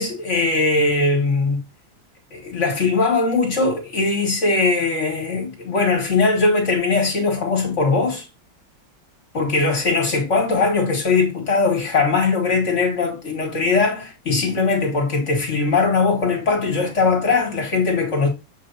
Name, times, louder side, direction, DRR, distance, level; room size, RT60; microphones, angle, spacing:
voice 1, 0.0-1.6 2.3-8.3 9.3-18.3, left 3 dB, 40° left, 2.0 m, -20 dB
7.7 x 3.1 x 4.1 m
omnidirectional pair, 2.0 m